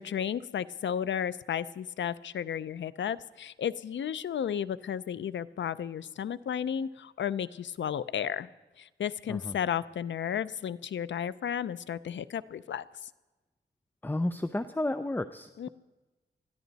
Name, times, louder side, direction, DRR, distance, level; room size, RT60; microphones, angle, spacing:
voice 1, 0.0-8.5 8.8-13.1 15.6-15.7, left 8 dB, 90° left, 16 dB, 0.5 m, -33 dB
voice 2, 14.0-15.7, left 1 dB, 10° left, 12 dB, 0.5 m, -32 dB
21.0 x 13.5 x 4.0 m, 1.2 s
wide cardioid pair, 105°, 18 cm